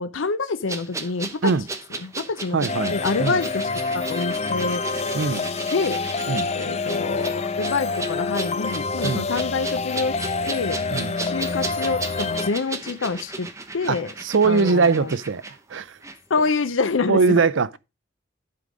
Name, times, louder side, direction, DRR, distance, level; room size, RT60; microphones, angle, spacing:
voice 1, 0.0-1.5 2.0-3.7 3.9-4.8 5.7-6.0 6.5-10.2 10.5-10.8 11.2-13.5 13.7-14.1 14.4-15.1 16.3-17.4, left 4 dB, 80° left, 0.6 m, -26 dB
sound 1, 0.7-16.2 16.4-16.6, right 3 dB, 15° right, 0.8 m, -35 dB
voice 2, 2.5-2.9 3.2-3.4 5.1-5.4 6.3-6.5 9.0-9.3 10.9-11.1 13.9-15.4 15.7-16.0 17.1-17.8, right 4 dB, 75° right, 0.5 m, -21 dB
sound 2, 2.7-12.5, left 4 dB, 35° left, 0.4 m, -27 dB
11.0 x 3.9 x 4.9 m
head